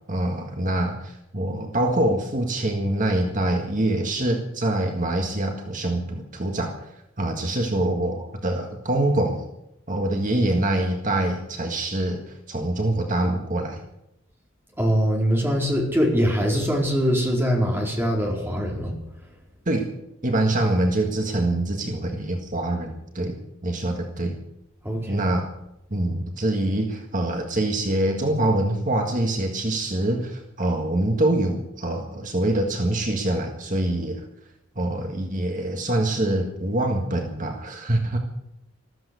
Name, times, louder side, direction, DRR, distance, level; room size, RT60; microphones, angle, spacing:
voice 1, 0.1-6.8 7.2-9.4 9.9-13.8 19.7-19.9 20.2-23.4 23.6-24.4 25.1-25.5 25.9-34.2 34.8-38.2, right 1 dB, 40° right, 3 dB, 1.8 m, -25 dB
voice 2, 14.8-18.9 24.8-25.2, equal, 10° right, -1 dB, 4.3 m, -22 dB
14.5 x 14.0 x 6.9 m, 0.85 s
head